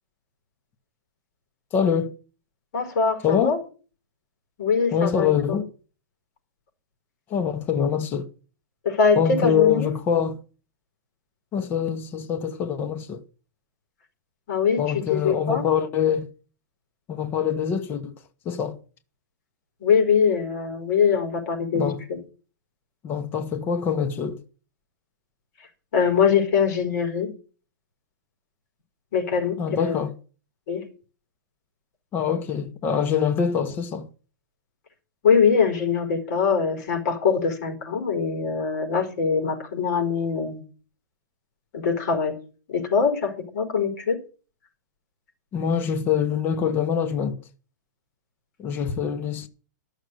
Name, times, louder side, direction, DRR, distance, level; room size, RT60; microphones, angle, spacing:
voice 1, 1.7-2.1 3.2-3.6 4.9-5.6 7.3-8.3 9.2-10.4 11.5-13.2 14.8-16.3 17.1-18.1 18.4-18.8 21.7-22.0 23.0-24.4 29.6-30.1 32.1-34.1 45.5-47.3 48.6-49.5, left 7 dB, 20° left, 0.9 m, -24 dB
voice 2, 2.7-3.6 4.6-5.6 8.8-9.9 14.5-15.6 19.8-22.2 25.9-27.3 29.1-30.0 30.7-30.9 35.2-40.6 41.7-42.4 42.7-44.2, left 6 dB, 50° left, 4.3 m, -23 dB
13.0 x 6.6 x 7.7 m
hypercardioid pair, 160°, 10 cm